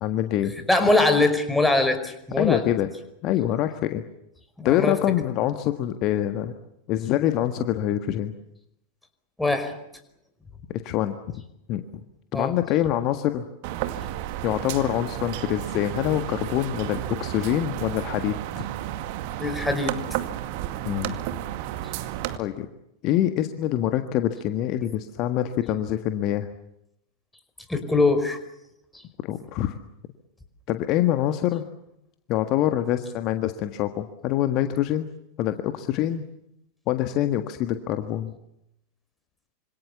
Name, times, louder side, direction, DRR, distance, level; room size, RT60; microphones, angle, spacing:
voice 1, 0.0-0.5 2.4-2.9 3.2-4.0 4.6-6.6 6.9-8.3 10.7-11.2 11.7-12.0 12.3-13.5 14.4-18.6 20.8-21.2 22.4-22.7 23.0-26.5 29.2-29.8 30.7-31.7 32.3-35.1 35.4-36.2 36.9-38.3, left 12 dB, 40° left, 8 dB, 1.6 m, -25 dB
voice 2, 0.7-2.7 4.6-5.0 9.4-9.7 12.3-12.5 19.4-19.9 27.7-28.4, left 2 dB, 5° left, 7 dB, 5.0 m, -22 dB
sound 1, 13.6-22.4, right 13 dB, 45° right, 2.1 m, -32 dB
26.5 x 26.0 x 7.2 m, 0.81 s
figure-of-eight pair, 90°, 0 cm